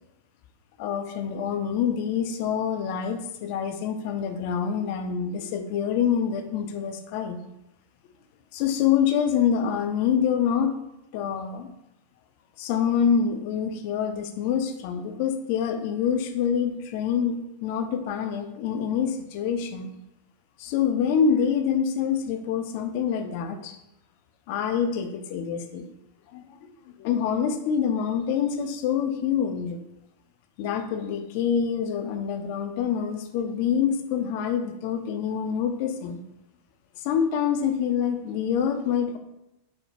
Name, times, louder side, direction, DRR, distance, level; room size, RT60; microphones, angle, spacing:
voice 1, 0.8-7.4 8.5-10.7 11.1-11.7 12.6-19.9 20.6-23.8 24.5-25.9 26.3-26.5 27.0-29.8 30.6-36.2 37.0-39.2, left 7 dB, 45° left, 8 dB, 0.4 m, -26 dB
4.1 x 3.2 x 2.8 m, 0.90 s
figure-of-eight pair, 90°, 0 cm